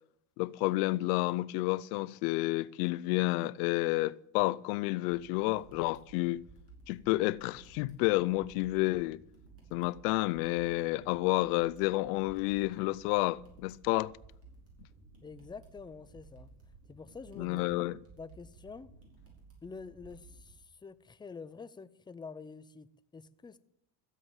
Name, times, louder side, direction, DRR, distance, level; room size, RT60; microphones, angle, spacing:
voice 1, 0.4-6.4 6.9-9.2 9.7-14.1 17.4-18.0, left 20 dB, 90° left, 0.6 m, -30 dB
sound 1, 5.1-20.5, right 4 dB, 30° right, 5.4 m, -56 dB
voice 2, 15.2-16.5 16.9-17.6 18.2-18.9 19.6-23.6, left 5 dB, 10° left, 0.5 m, -47 dB
14.0 x 8.3 x 7.2 m
cardioid pair, 115°, 44 cm